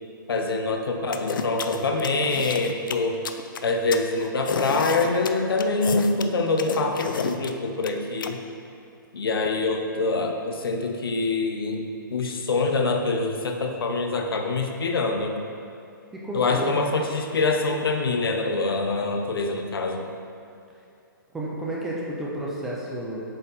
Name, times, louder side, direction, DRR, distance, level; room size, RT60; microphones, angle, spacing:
voice 1, 0.3-3.2 3.6-8.4 9.1-15.4 16.3-20.1, left 3 dB, 90° left, 4 dB, 0.8 m, -25 dB
sound 1, 1.1-8.3, left 6 dB, 65° left, 0.4 m, -31 dB
voice 2, 16.1-16.8 21.3-23.2, right 1 dB, 5° right, -5 dB, 0.3 m, -31 dB
7.6 x 4.2 x 4.1 m, 2.6 s
hypercardioid pair, 170°, 12 cm